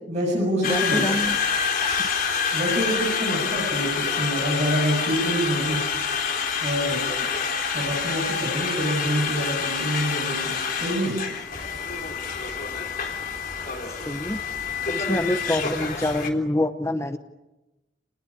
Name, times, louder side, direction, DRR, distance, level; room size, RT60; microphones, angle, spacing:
voice 1, 0.1-1.1 2.5-5.9 6.6-7.1 7.7-11.2, equal, 40° right, -5 dB, 7.9 m, -26 dB
Conversation, 0.6-16.3, left 6 dB, 50° left, 3.7 m, -27 dB
voice 2, 0.7-2.1 14.0-14.4 14.9-17.2, left 1 dB, 15° left, 8 dB, 0.9 m, -27 dB
29.0 x 19.5 x 8.8 m, 1.0 s
head